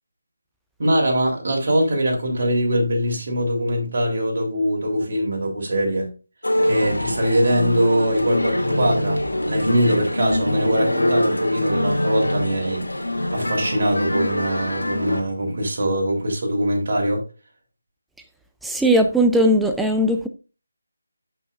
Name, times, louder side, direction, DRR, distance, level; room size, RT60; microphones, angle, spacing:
voice 1, 0.8-6.1 6.6-17.2, equal, 45° right, 3.4 m, -22 dB
Male speech man speaking, 6.4-15.2, left 1 dB, 80° left, 2.4 m, -24 dB
voice 2, 18.6-20.3, equal, ahead, 0.5 m, -18 dB
13.0 x 5.8 x 2.5 m
figure-of-eight pair, 155°, 0 cm